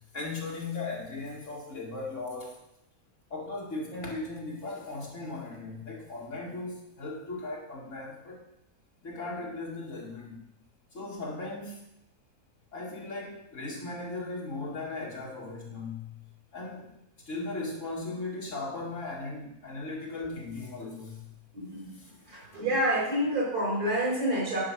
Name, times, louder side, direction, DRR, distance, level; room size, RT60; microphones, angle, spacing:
voice 1, 0.1-2.6 3.3-8.4 9.0-10.4 10.9-11.8 12.7-16.2 16.5-17.0 17.3-21.2 22.0-22.1, left 3 dB, 55° left, -3 dB, 2.6 m, -37 dB
voice 2, 21.5-21.9 22.3-24.6, right 1 dB, 85° right, -4 dB, 4.5 m, -28 dB
10.0 x 5.2 x 6.2 m, 0.81 s
omnidirectional pair, 1.6 m